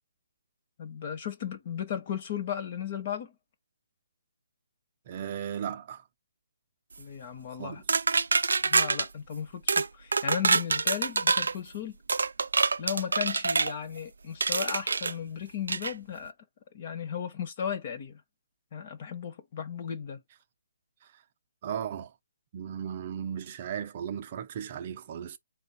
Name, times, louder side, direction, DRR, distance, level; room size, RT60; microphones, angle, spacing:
voice 1, 0.8-3.3 7.0-7.8 8.6-12.0 12.8-16.3 16.7-18.2 18.7-20.2, left 8 dB, 30° left, 0.9 m, -35 dB
voice 2, 5.1-6.0 7.5-7.8 21.0-21.2 21.6-22.1 22.5-25.4, right 8 dB, 30° right, 0.5 m, -36 dB
sound 1, 7.9-9.1 9.7-9.9 10.1-11.5 12.1-13.7 14.4-15.1 15.7-15.9, right 4 dB, 90° right, 0.3 m, -26 dB
4.3 x 2.2 x 4.1 m
hypercardioid pair, 170°, 0 cm